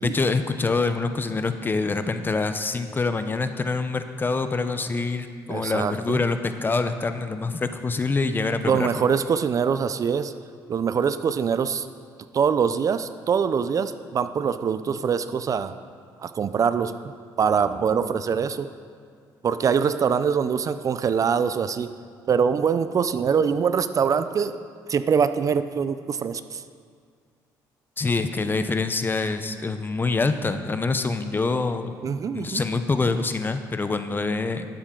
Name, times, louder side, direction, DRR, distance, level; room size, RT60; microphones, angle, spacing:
voice 1, 0.0-9.0 28.0-32.0 32.3-34.7, left 3 dB, 25° left, 9 dB, 0.7 m, -25 dB
voice 2, 5.5-6.2 8.7-10.3 10.7-11.9 12.3-15.7 16.2-16.9 17.4-18.7 19.4-21.9 22.3-24.6 24.9-26.6 32.0-32.6, right 6 dB, 45° right, 12 dB, 0.4 m, -23 dB
11.5 x 8.7 x 3.8 m, 2.1 s
cardioid pair, 85°, 8 cm